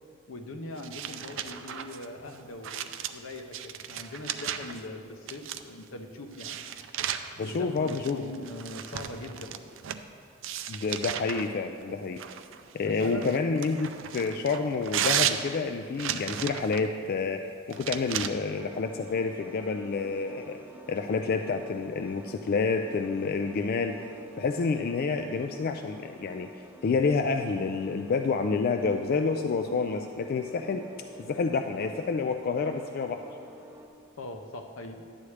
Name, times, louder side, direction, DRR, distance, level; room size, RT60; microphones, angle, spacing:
voice 1, 0.3-6.7 7.4-9.6 12.8-13.3 34.2-35.0, left 2 dB, 75° left, 5 dB, 0.7 m, -41 dB
sound 1, 0.8-4.8 5.3-5.8 6.3-10.0 10.4-11.5 12.2-16.9 17.7-18.3, right 9 dB, 65° right, 0.4 m, -34 dB
voice 2, 7.4-8.2 10.7-12.2 12.7-20.6 20.9-24.0 24.4-26.5 26.8-30.8 31.2-33.2, left 4 dB, 45° left, 6 dB, 0.3 m, -29 dB
sound 2, 18.5-33.9, equal, 10° right, 0.5 m, -48 dB
11.0 x 8.3 x 3.3 m, 2.4 s
head